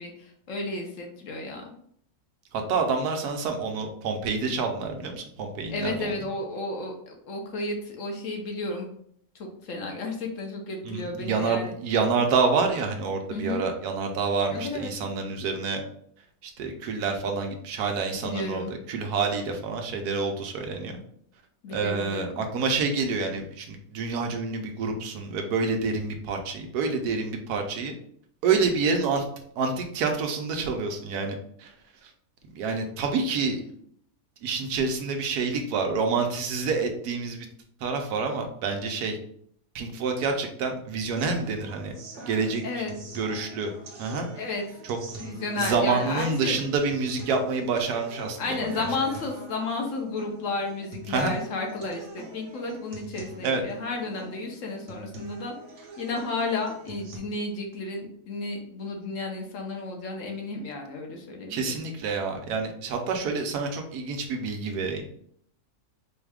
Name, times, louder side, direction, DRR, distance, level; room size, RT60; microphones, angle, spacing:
voice 1, 0.0-1.6 5.7-8.9 9.3-11.7 13.3-13.6 14.5-14.9 18.2-18.7 21.6-22.4 42.6-42.9 44.4-44.6 45.2-46.6 48.4-55.5 56.0-61.8, left 3 dB, 65° left, 2 dB, 1.0 m, -32 dB
voice 2, 2.5-6.1 10.8-15.8 16.4-21.0 21.7-27.9 28.4-29.2 29.6-31.7 32.0-32.1 32.5-33.6 34.4-37.5 37.8-39.2 39.7-41.9 42.3-42.8 43.1-43.7 44.0-44.3 44.8-45.0 45.6-48.9 51.1-51.3 53.4-53.6 61.5-65.0, right 4 dB, 90° right, 4 dB, 1.2 m, -28 dB
sound 1, 41.2-57.2, right 1 dB, 55° right, 1.0 m, -44 dB
4.4 x 2.4 x 3.4 m, 0.65 s
omnidirectional pair, 1.6 m